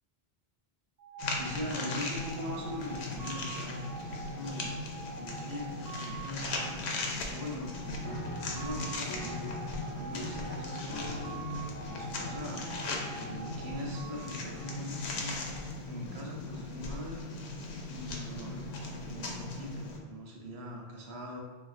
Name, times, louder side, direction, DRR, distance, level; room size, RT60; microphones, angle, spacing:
sound 1, 1.0-15.4, right 3 dB, 50° right, 0.6 m, -46 dB
sound 2, 1.2-20.0, left 2 dB, 85° left, 0.8 m, -38 dB
voice 1, 1.4-4.7 5.1-8.0 8.5-9.5 9.9-11.4 11.9-12.7 13.1-15.4 15.8-17.3 17.9-21.4, left 1 dB, 80° right, -1 dB, 0.9 m, -42 dB
Piano, 8.0-14.8, left 1 dB, 30° left, 0.6 m, -44 dB
4.2 x 2.5 x 2.4 m, 1.3 s
omnidirectional pair, 1.1 m